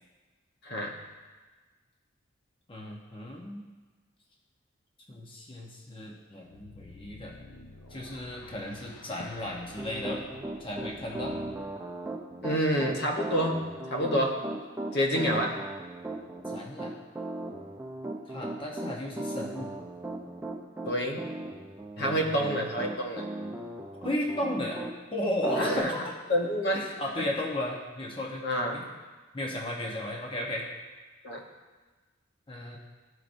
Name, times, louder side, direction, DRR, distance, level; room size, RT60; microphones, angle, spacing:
voice 1, 0.6-0.9 12.4-14.4 14.9-15.6 20.8-21.3 22.0-23.3 25.6-25.9 26.3-26.8 27.2-27.3 28.4-28.8 31.2-31.4, equal, 55° left, 1 dB, 1.0 m, -28 dB
voice 2, 2.7-3.6 5.1-7.3 7.9-10.2 10.6-11.4 16.5-16.9 18.3-19.7 22.0-22.7 24.0-24.8 25.1-26.1 26.7-28.4 28.7-28.9 29.3-30.7 32.5-32.8, left 1 dB, 25° left, -2 dB, 0.8 m, -34 dB
sound 1, 6.4-11.7, left 3 dB, 85° left, 0.7 m, -50 dB
Piano, 9.8-24.9 25.4-25.8, right 2 dB, 10° right, 0.5 m, -37 dB
13.5 x 4.8 x 2.6 m, 1.3 s
head